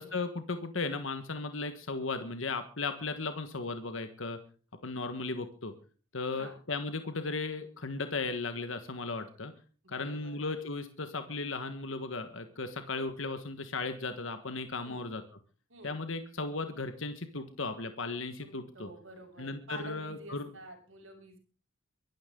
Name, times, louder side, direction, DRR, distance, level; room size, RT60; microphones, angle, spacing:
voice 1, 0.0-4.4 4.8-5.7 6.1-9.5 9.9-15.2 15.8-18.9 19.4-20.5, left 3 dB, 70° left, 8 dB, 1.5 m, -36 dB
voice 2, 9.8-10.4 14.8-15.0 15.7-15.9 18.7-21.4, right 2 dB, 70° right, 3 dB, 7.2 m, -49 dB
23.5 x 12.5 x 3.8 m, 0.40 s
head